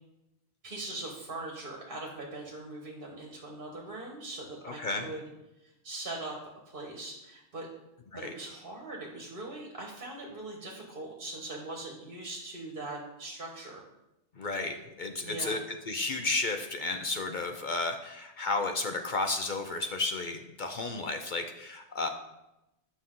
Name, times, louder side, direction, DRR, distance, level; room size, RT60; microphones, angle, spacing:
voice 1, 0.6-5.3 5.6-6.4 6.7-7.7 8.1-13.8 15.2-15.6 22.0-22.1, right 2 dB, 50° right, -1 dB, 1.3 m, -41 dB
voice 2, 4.6-5.1 8.1-8.3 14.4-15.6 15.9-22.1, left 3 dB, 50° left, 5 dB, 0.7 m, -32 dB
9.7 x 6.1 x 3.7 m, 0.94 s
omnidirectional pair, 1.2 m